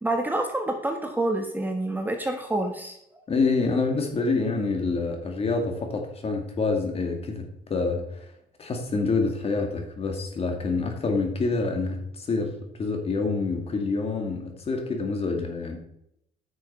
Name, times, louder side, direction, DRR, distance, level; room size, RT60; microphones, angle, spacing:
voice 1, 0.0-3.0, right 2 dB, 10° right, 4 dB, 1.3 m, -27 dB
voice 2, 3.3-8.3 8.6-15.8, left 3 dB, 35° left, 4 dB, 2.3 m, -27 dB
9.8 x 6.4 x 4.5 m, 0.78 s
cardioid pair, 110°, 17 cm